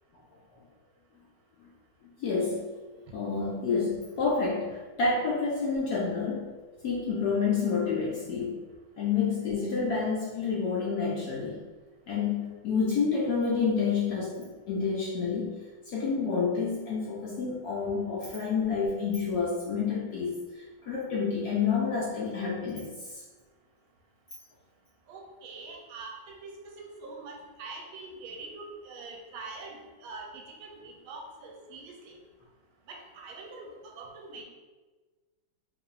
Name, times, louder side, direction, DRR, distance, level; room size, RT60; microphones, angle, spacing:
voice 1, 2.2-2.7 3.1-6.5 6.8-8.6 9.0-11.6 12.1-15.5 15.9-23.2, left 5 dB, 75° left, -4 dB, 0.9 m, -29 dB
voice 2, 25.1-32.1 32.9-34.4, right 3 dB, 85° right, 1 dB, 1.5 m, -44 dB
4.8 x 2.6 x 2.5 m, 1.3 s
omnidirectional pair, 2.2 m